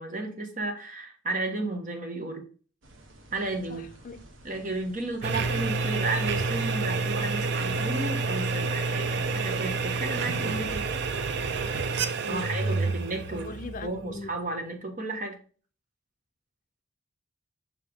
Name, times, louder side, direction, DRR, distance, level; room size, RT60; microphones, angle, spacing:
voice 1, 0.0-2.4 3.3-3.9 4.4-10.9 12.3-13.5 13.8-15.4, right 2 dB, 45° right, 1.4 m, -33 dB
sound 1, 2.8-10.7, right 2 dB, 85° right, 1.0 m, -50 dB
voice 2, 3.7-4.2 12.2-13.0 13.3-14.4, left 3 dB, 45° left, 0.5 m, -40 dB
sound 2, 5.2-14.4, right 4 dB, 60° right, 0.5 m, -29 dB
sound 3, 5.3-11.9, left 1 dB, 5° left, 1.2 m, -44 dB
5.9 x 5.0 x 3.6 m
head